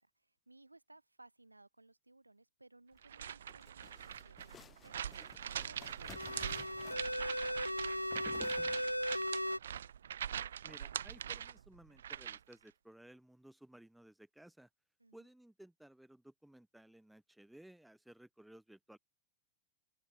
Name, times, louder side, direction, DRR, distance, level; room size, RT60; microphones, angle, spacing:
voice 1, 0.0-9.3 15.0-15.2, right 2 dB, 85° right, 5.4 m, -62 dB
sound 1, 3.0-12.5, right 9 dB, 65° right, 0.6 m, -43 dB
sound 2, 3.2-9.2, left 8 dB, 20° left, 1.8 m, -56 dB
sound 3, 6.2-9.6, equal, 90° left, 1.0 m, -37 dB
voice 2, 10.6-14.7 15.1-19.0, right 1 dB, 5° right, 2.3 m, -58 dB
open air
figure-of-eight pair, 90°, 0 cm